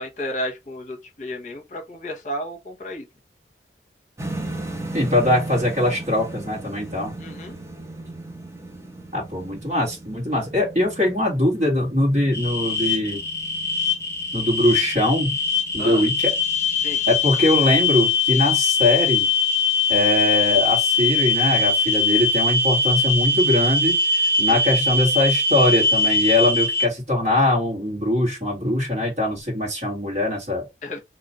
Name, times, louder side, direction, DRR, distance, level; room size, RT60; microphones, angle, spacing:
voice 1, 0.0-3.0 7.2-7.6 15.8-16.0 16.8-17.0 24.5-24.6 30.8-31.0, left 1 dB, 45° left, 0.9 m, -32 dB
sound 1, 4.2-18.2, right 2 dB, 15° right, 0.7 m, -37 dB
voice 2, 4.9-7.1 9.1-13.2 14.3-15.4 15.7-16.3 17.1-19.3 19.9-24.0 24.4-30.7, left 1 dB, 40° right, 1.9 m, -21 dB
sound 2, 12.3-26.9, left 3 dB, 15° left, 1.1 m, -21 dB
3.0 x 2.5 x 4.1 m
head